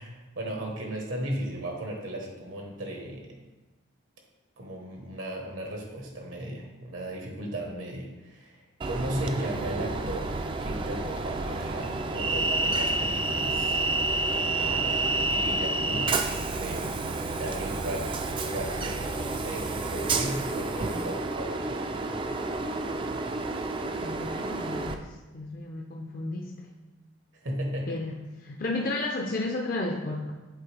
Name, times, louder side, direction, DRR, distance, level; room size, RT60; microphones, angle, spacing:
voice 1, 0.0-3.4 4.6-10.4 10.6-13.8 14.6-15.0 15.3-16.9 17.3-18.1 18.4-19.0 19.3-21.7 27.4-28.0, right 1 dB, 80° right, 1 dB, 1.2 m, -36 dB
Train, 8.8-24.9, right 2 dB, 25° right, 0.3 m, -29 dB
voice 2, 24.0-26.7 27.9-30.3, left 2 dB, 45° left, 0 dB, 0.5 m, -33 dB
8.2 x 4.0 x 3.3 m, 1.1 s
head